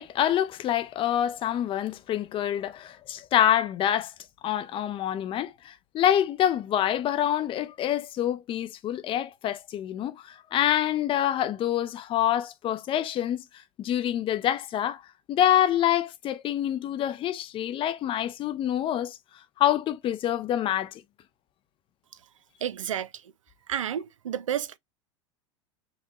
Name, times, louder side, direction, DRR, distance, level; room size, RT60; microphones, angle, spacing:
voice 1, 0.0-4.1 4.4-13.4 13.8-15.0 15.3-19.2 19.6-21.0, left 11 dB, 35° left, 0.5 m, -26 dB
voice 2, 22.6-23.1 23.7-24.8, right 10 dB, 85° right, 0.4 m, -30 dB
5.2 x 2.1 x 2.9 m
hypercardioid pair, 95°, 16 cm